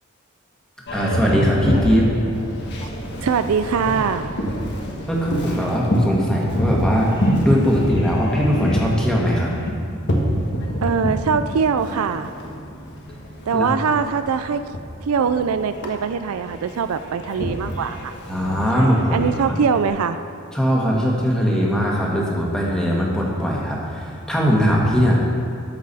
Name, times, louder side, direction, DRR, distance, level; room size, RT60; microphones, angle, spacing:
Boat Water vehicle, 0.9-19.9, equal, 55° left, 1.3 m, -27 dB
voice 1, 0.9-2.1 5.1-7.1 7.4-9.5 13.5-13.7 18.3-19.6 20.5-25.2, equal, 5° left, -4 dB, 1.5 m, -20 dB
voice 2, 3.2-4.3 10.8-12.3 13.5-14.6 15.1-18.1 18.7-20.2, right 6 dB, 85° right, 10 dB, 0.4 m, -22 dB
13.5 x 6.1 x 4.2 m, 2.5 s
head